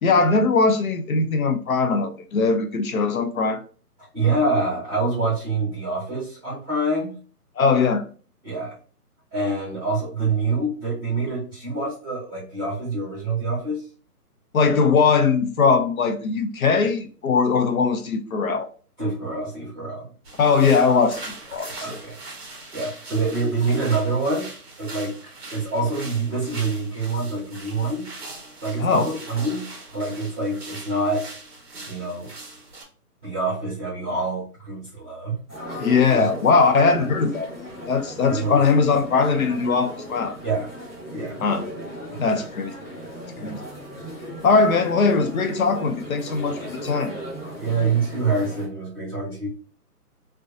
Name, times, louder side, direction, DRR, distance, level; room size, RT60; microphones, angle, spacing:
voice 1, 0.0-3.6 7.6-8.0 14.5-18.7 20.4-22.0 28.8-29.1 35.8-37.5 37.9-40.4 41.4-41.6 42.2-42.7 43.4-43.6 44.4-47.1, left 4 dB, 65° left, 6 dB, 0.5 m, -20 dB
voice 2, 4.1-7.2 8.4-8.7 9.3-13.8 19.0-20.0 21.8-22.2 22.5-24.5 24.8-25.1 25.5-28.1 28.6-31.3 31.9-32.3 33.2-35.4 36.1-36.3 38.3-38.6 40.4-40.7 41.1-41.4 42.1-42.3 43.3-43.5 47.6-49.5, right 3 dB, 15° right, -9 dB, 0.9 m, -26 dB
sound 1, 20.2-32.8, right 2 dB, 45° right, 0.6 m, -41 dB
sound 2, 35.5-48.7, equal, 15° left, 0.8 m, -37 dB
2.5 x 2.2 x 2.4 m, 0.40 s
hypercardioid pair, 165°, 47 cm